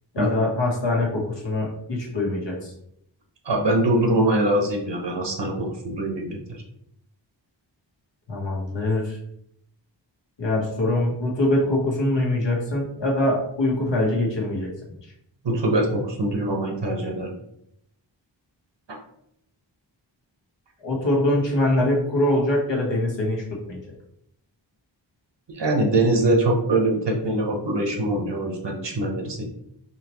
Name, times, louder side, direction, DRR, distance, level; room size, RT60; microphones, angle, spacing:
voice 1, 0.1-2.7 8.3-9.2 10.4-14.7 20.8-23.8, left 1 dB, 70° left, -2 dB, 1.3 m, -23 dB
voice 2, 3.4-6.6 15.4-17.3 18.9-19.0 25.5-29.4, right 1 dB, 65° right, 1 dB, 1.0 m, -23 dB
4.1 x 3.1 x 3.0 m, 0.75 s
wide cardioid pair, 100°, 45 cm